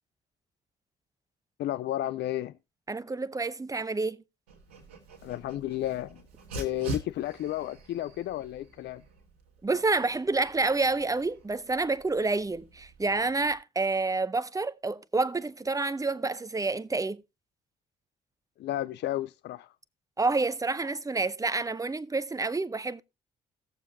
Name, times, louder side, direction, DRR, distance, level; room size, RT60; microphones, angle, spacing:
voice 1, 1.6-2.6 5.2-6.2 6.5-9.0 18.6-19.7, left 13 dB, 60° left, 0.5 m, -32 dB
voice 2, 2.9-4.2 9.6-17.2 20.2-23.0, right 3 dB, 15° right, 0.7 m, -28 dB
Dog, 4.5-13.6, right 3 dB, 90° right, 1.6 m, -45 dB
17.5 x 7.0 x 2.7 m
hypercardioid pair, 45°, 20 cm